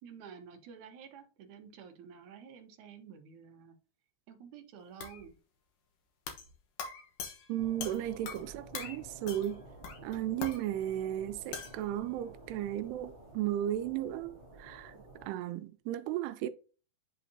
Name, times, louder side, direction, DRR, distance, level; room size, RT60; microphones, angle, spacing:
voice 1, 0.0-3.8 4.3-5.4 8.4-8.5, right 7 dB, 70° right, 1.9 m, -51 dB
sound 1, 5.0-5.3 6.3-6.5 6.8-8.5 8.7-9.0 9.3-9.6 9.8-10.6 11.5-11.8, left 6 dB, 65° left, 2.4 m, -42 dB
voice 2, 7.5-9.6 10.0-16.5, right 12 dB, 85° right, 2.6 m, -35 dB
sound 2, 7.6-15.3, right 2 dB, 55° right, 0.6 m, -52 dB
11.0 x 4.1 x 2.7 m
omnidirectional pair, 4.7 m